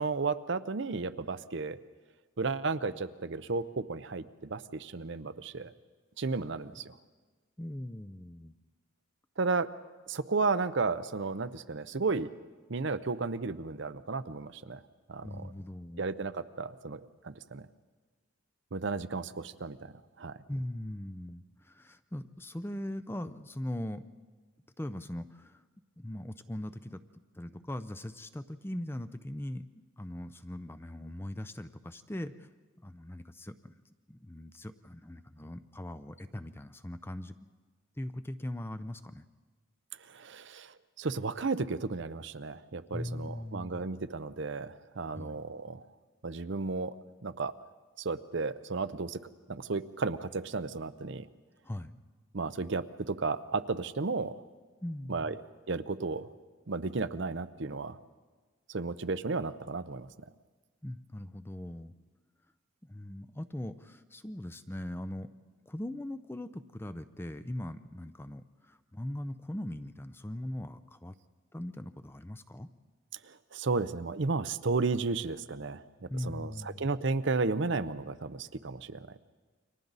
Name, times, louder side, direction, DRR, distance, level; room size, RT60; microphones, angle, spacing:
voice 1, 0.0-1.8 2.4-5.7 6.2-6.9 9.4-9.7 10.1-12.3 12.7-14.8 15.1-15.3 16.0-17.6 18.7-19.9 20.2-20.4 40.1-45.8 46.2-46.9 47.2-47.5 48.0-49.2 49.5-51.3 52.3-54.3 55.1-55.4 55.7-56.3 56.7-58.0 58.7-60.1 73.2-79.2, right 4 dB, 60° right, 12 dB, 0.7 m, -33 dB
voice 2, 7.6-8.5 15.2-16.0 20.5-24.0 24.8-25.6 26.0-29.6 30.0-32.5 32.8-33.8 34.1-37.5 38.0-39.3 42.9-43.9 45.1-45.4 51.6-52.0 54.8-55.4 60.8-61.9 62.8-65.3 65.7-71.2 71.5-72.7 76.1-76.9, left 1 dB, 10° left, 11 dB, 0.5 m, -40 dB
29.5 x 24.5 x 4.1 m, 1.4 s
head